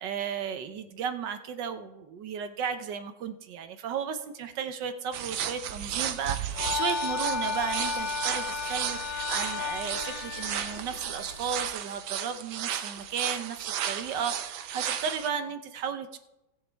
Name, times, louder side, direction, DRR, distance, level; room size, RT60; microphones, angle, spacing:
voice 1, 0.0-16.2, right 7 dB, 70° right, 9 dB, 1.4 m, -34 dB
sound 1, 5.1-15.3, right 9 dB, 85° right, 1.6 m, -34 dB
sound 2, 6.5-11.7, left 5 dB, 65° left, 1.4 m, -34 dB
18.5 x 7.1 x 3.4 m, 0.94 s
omnidirectional pair, 2.1 m